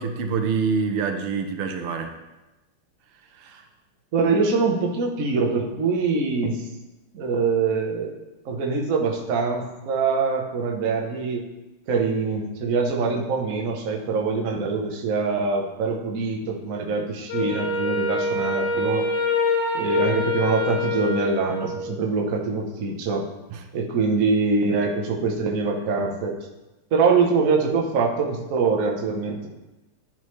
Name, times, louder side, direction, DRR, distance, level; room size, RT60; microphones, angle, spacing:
voice 1, 0.0-2.1 3.3-3.6 23.5-23.6, right 5 dB, 90° right, 6 dB, 1.6 m, -26 dB
voice 2, 4.1-6.6 7.1-8.2 8.4-11.4 11.9-19.1 19.7-23.3 23.7-26.4 26.9-29.5, right 4 dB, 55° right, 1 dB, 1.0 m, -24 dB
Wind instrument woodwind instrument, 17.3-21.9, left 2 dB, 55° left, 2.0 m, -25 dB
10.5 x 4.3 x 3.1 m, 1.0 s
omnidirectional pair, 2.4 m